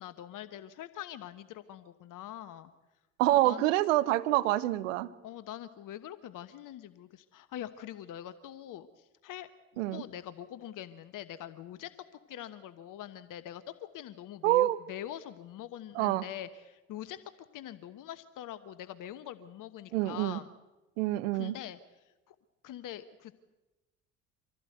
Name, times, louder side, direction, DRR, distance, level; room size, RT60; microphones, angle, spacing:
voice 1, 0.0-2.7 3.3-3.6 5.2-9.5 9.9-17.2 17.5-20.5 21.3-21.8 22.3-22.4 22.6-23.3, left 11 dB, 55° left, 13 dB, 1.1 m, -44 dB
voice 2, 3.2-5.1 9.8-10.0 14.4-14.8 15.9-16.2 19.9-20.4 21.0-21.6, right 16 dB, 75° right, 15 dB, 1.0 m, -26 dB
25.5 x 16.0 x 8.0 m, 1.1 s
hypercardioid pair, 60°, 39 cm